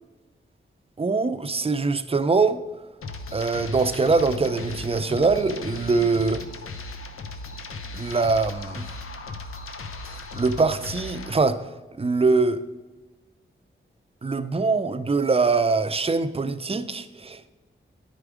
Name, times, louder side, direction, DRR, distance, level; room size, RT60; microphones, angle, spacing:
voice 1, 1.0-2.6 3.3-6.4 7.9-8.9 10.3-11.7 12.0-12.6 14.2-17.5, right 4 dB, 30° right, 0.5 m, -23 dB
sound 1, 3.0-11.4, left 3 dB, 85° left, 0.7 m, -37 dB
9.7 x 4.8 x 4.9 m
wide cardioid pair, 70°, 21 cm